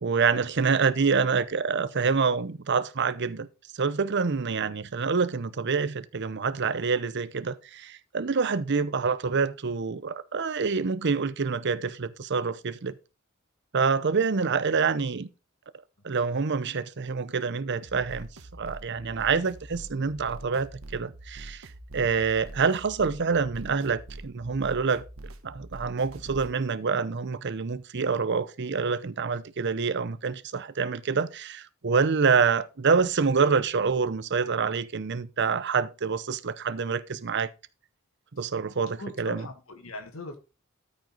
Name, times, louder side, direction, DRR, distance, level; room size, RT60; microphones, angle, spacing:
voice 1, 0.0-3.5 3.7-12.9 13.7-15.3 16.0-21.7 21.9-25.0 25.4-37.5 38.3-39.5, right 5 dB, 55° right, 0.7 m, -26 dB
sound 1, 17.8-26.5, right 1 dB, 75° right, 1.2 m, -44 dB
voice 2, 39.0-40.4, left 2 dB, 75° left, 1.6 m, -39 dB
13.0 x 5.3 x 4.0 m
head